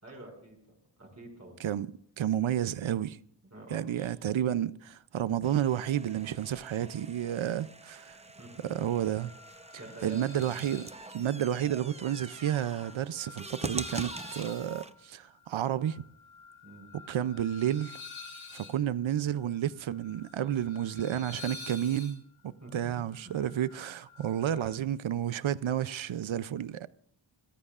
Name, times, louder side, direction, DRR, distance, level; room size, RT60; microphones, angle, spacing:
voice 1, 0.0-1.6 3.5-4.6 8.3-8.6 9.8-10.6 16.6-16.9 22.6-23.0 23.2-23.3, right 1 dB, 35° right, 5.9 m, -48 dB
voice 2, 1.6-3.2 3.7-8.2 8.6-9.3 10.0-10.9 11.1-16.0 17.1-18.0 18.5-26.9, right 10 dB, 85° right, 0.6 m, -31 dB
sound 1, 5.4-14.9, right 2 dB, 15° right, 0.7 m, -44 dB
sound 2, 8.6-24.8, left 4 dB, 85° left, 3.6 m, -50 dB
26.0 x 14.5 x 2.4 m
wide cardioid pair, 70°, 46 cm